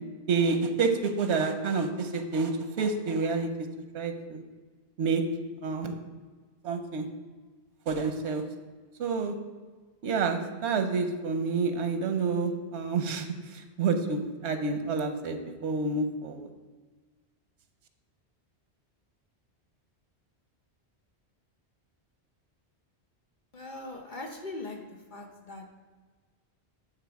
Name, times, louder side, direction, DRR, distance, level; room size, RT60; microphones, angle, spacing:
voice 1, 0.3-3.7 3.9-4.4 5.0-5.2 5.6-5.9 6.6-7.1 7.9-8.4 9.0-9.3 10.0-16.5, right 4 dB, 90° right, 7 dB, 1.0 m, -28 dB
voice 2, 23.5-24.8 25.1-25.7, left 2 dB, 50° left, 2 dB, 0.9 m, -40 dB
8.9 x 3.6 x 4.6 m, 1.4 s
omnidirectional pair, 1.1 m